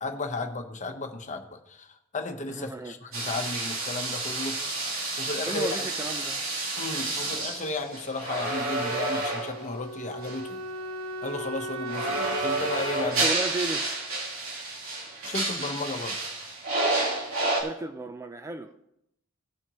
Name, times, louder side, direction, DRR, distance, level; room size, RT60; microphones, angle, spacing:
voice 1, 0.0-4.5 5.2-5.9 6.8-10.6 11.2-13.2 15.2-16.2, left 2 dB, 35° left, 1.1 m, -34 dB
voice 2, 2.5-3.2 5.5-6.4 13.0-13.9 17.6-18.8, right 2 dB, 15° right, 0.5 m, -35 dB
sound 1, 3.1-9.7 10.2-10.4 11.9-17.6, right 2 dB, 75° right, 3.2 m, -30 dB
Wind instrument woodwind instrument, 9.1-14.1, right 1 dB, 60° right, 1.8 m, -38 dB
17.5 x 8.6 x 3.1 m
head